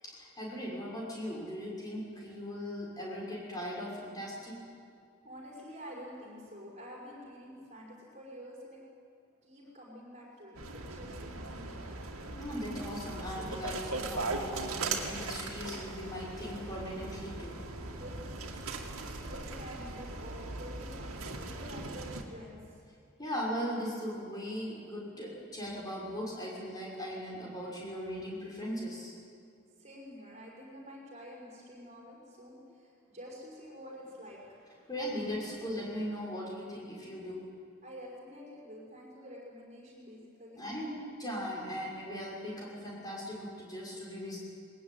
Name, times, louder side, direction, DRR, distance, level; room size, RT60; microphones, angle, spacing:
voice 1, 0.0-4.5 12.3-17.5 23.2-29.1 34.9-37.4 40.6-40.9 41.2-44.4, equal, 15° left, -3 dB, 6.1 m, -39 dB
voice 2, 5.2-8.8 9.4-12.0 17.9-18.9 19.2-22.9 29.8-34.9 37.8-40.7, equal, 30° right, -4 dB, 6.0 m, -49 dB
sound 1, 10.5-22.2, right 3 dB, 80° right, 2.4 m, -39 dB
21.0 x 20.5 x 9.5 m, 2.4 s
head